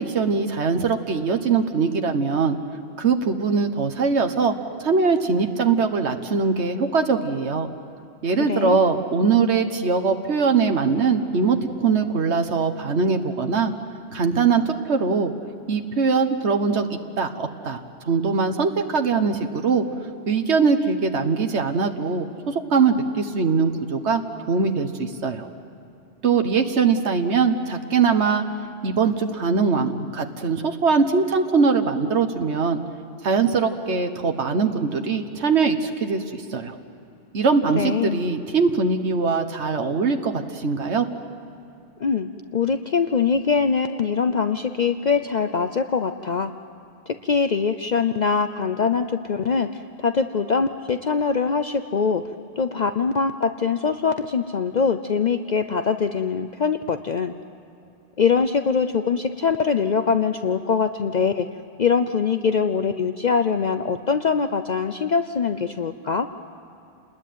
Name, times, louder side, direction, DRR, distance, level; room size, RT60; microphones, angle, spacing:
voice 1, 0.0-2.6 3.0-4.5 4.8-7.7 8.2-13.7 14.1-15.3 15.7-19.8 20.3-25.5 26.2-28.4 28.8-32.8 33.2-36.7 37.3-41.1, right 5 dB, 90° right, 6 dB, 1.6 m, -22 dB
voice 2, 37.7-38.2 42.0-46.5 47.1-52.2 52.6-57.3 58.2-61.5 61.8-66.3, left 5 dB, 45° left, 9 dB, 0.8 m, -23 dB
29.0 x 20.5 x 9.4 m, 2.7 s
omnidirectional pair, 1.1 m